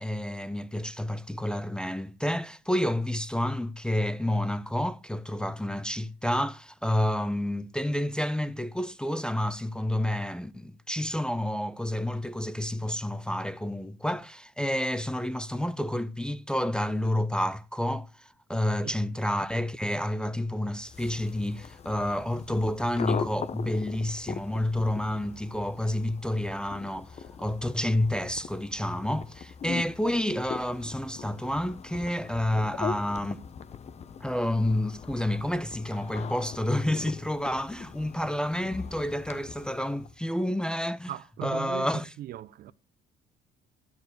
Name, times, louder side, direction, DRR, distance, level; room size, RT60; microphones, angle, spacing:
voice 1, 0.0-33.4 34.2-41.1 41.4-42.1, left 1 dB, 5° left, 0.4 m, -29 dB
voice 2, 18.5-19.0 41.1-41.9 42.2-42.7, right 12 dB, 65° right, 0.6 m, -39 dB
sound 1, 20.8-40.1, left 6 dB, 40° left, 0.9 m, -40 dB
12.0 x 4.7 x 7.9 m
cardioid pair, 110°, 17 cm